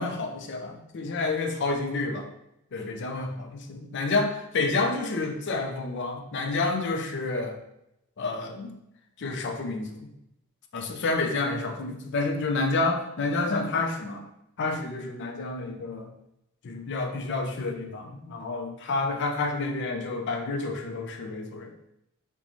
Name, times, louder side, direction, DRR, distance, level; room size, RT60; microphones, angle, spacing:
voice 1, 0.0-2.3 2.7-7.6 8.2-8.7 9.2-10.0 10.7-14.2 14.6-16.1 16.6-21.7, left 3 dB, 55° left, 4 dB, 0.4 m, -29 dB
3.9 x 2.2 x 3.0 m, 0.83 s
head